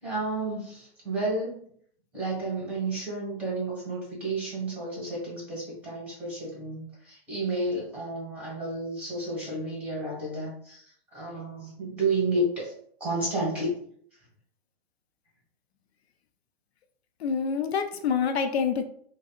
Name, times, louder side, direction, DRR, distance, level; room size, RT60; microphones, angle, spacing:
voice 1, 0.0-1.7 2.1-12.7 13.0-13.8, right 2 dB, 5° right, 1.5 m, -31 dB
voice 2, 17.2-18.9, left 6 dB, 85° left, 0.5 m, -26 dB
3.4 x 2.0 x 2.4 m
hypercardioid pair, 135°, 31 cm